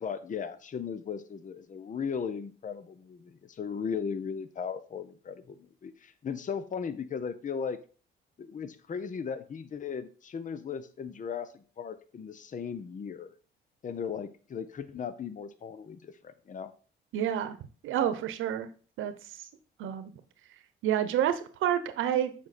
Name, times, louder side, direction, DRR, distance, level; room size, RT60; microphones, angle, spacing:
voice 1, 0.0-7.8 8.4-13.3 13.8-16.7, left 6 dB, 40° left, 13 dB, 0.8 m, -37 dB
voice 2, 17.1-17.6 17.8-18.7 19.0-19.1 19.8-20.1 20.8-22.3, right 10 dB, 85° right, 12 dB, 0.9 m, -28 dB
7.5 x 5.5 x 4.2 m, 0.39 s
cardioid pair, 90°, 20 cm